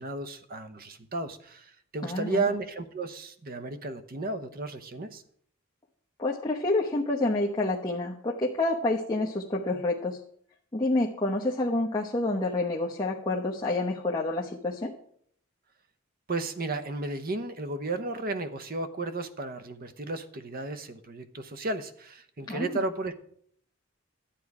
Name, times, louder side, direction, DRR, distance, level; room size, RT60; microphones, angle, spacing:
voice 1, 0.0-5.2 16.3-23.1, right 2 dB, 45° right, 10 dB, 0.8 m, -33 dB
voice 2, 2.0-2.4 6.2-10.2 10.7-14.9 22.5-22.8, left 2 dB, 20° left, -3 dB, 0.9 m, -28 dB
11.5 x 8.5 x 4.8 m, 0.64 s
head